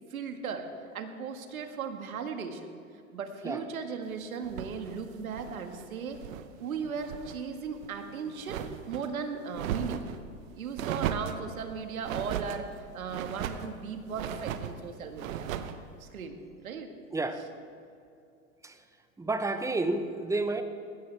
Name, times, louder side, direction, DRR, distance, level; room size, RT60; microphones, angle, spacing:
voice 1, 0.1-0.7 0.9-2.7 3.1-6.2 6.6-10.0 10.5-15.5 16.0-16.4 16.6-16.9 17.4-17.5, right 5 dB, 85° right, 6 dB, 1.8 m, -37 dB
sound 1, 4.4-6.5 6.8-7.4 7.8-9.1 9.5-10.2 10.8-11.4 12.0-12.6 13.1-13.7 14.1-14.8 15.2-15.8, right 9 dB, 70° right, 1.1 m, -36 dB
voice 2, 17.1-17.4 18.6-18.7 19.2-20.6, right 2 dB, 5° right, 9 dB, 1.0 m, -30 dB
20.0 x 16.5 x 3.5 m, 2.5 s
hypercardioid pair, 105°, 42 cm